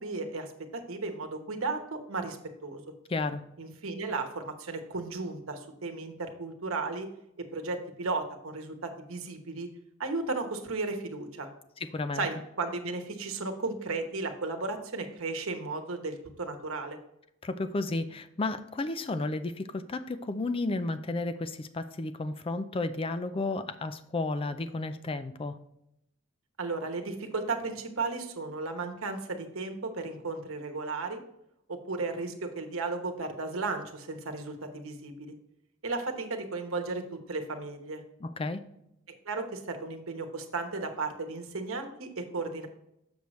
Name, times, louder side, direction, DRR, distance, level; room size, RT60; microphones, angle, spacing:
voice 1, 0.0-2.4 2.6-2.8 3.6-7.1 7.4-9.7 10.0-11.5 12.1-17.0 26.6-31.2 31.7-35.3 35.8-38.0 39.2-42.7, right 3 dB, 70° right, 5 dB, 1.0 m, -35 dB
voice 2, 3.1-3.4 11.8-12.3 17.4-25.6 38.2-38.6, left 2 dB, 25° left, 11 dB, 0.4 m, -32 dB
6.9 x 6.3 x 3.1 m, 0.81 s
head